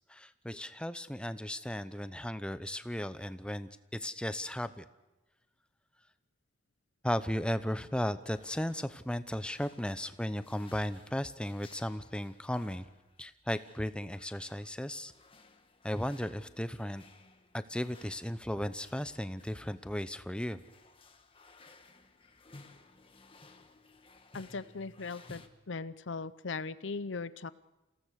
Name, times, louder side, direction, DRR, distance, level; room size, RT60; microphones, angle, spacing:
voice 1, 0.1-4.8 7.0-12.9 13.2-15.1 15.8-17.0 17.5-20.6, left 1 dB, 5° left, 12 dB, 0.8 m, -35 dB
sound 1, 8.2-25.5, left 3 dB, 30° left, 1.4 m, -59 dB
voice 2, 24.3-27.5, left 4 dB, 70° left, 16 dB, 0.7 m, -39 dB
28.5 x 17.0 x 6.5 m, 1.1 s
head